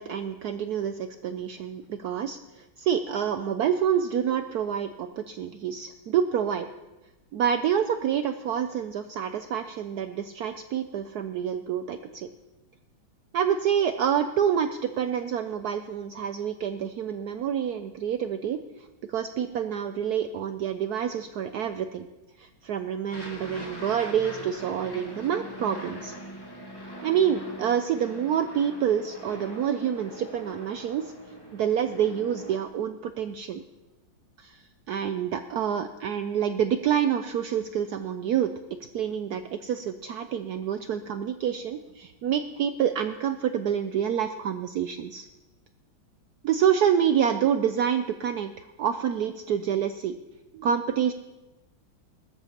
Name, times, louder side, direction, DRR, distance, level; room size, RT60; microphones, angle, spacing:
voice 1, 0.0-6.7 7.3-12.3 13.3-18.6 19.1-22.1 22.4-26.1 27.0-31.1 31.5-33.6 34.4-38.5 38.9-45.3 46.4-50.2 50.5-51.1, right 8 dB, 80° right, 9 dB, 0.8 m, -27 dB
Aircraft, 23.1-32.6, equal, 10° left, 1.8 m, -42 dB
20.5 x 13.0 x 2.9 m, 1.1 s
omnidirectional pair, 2.2 m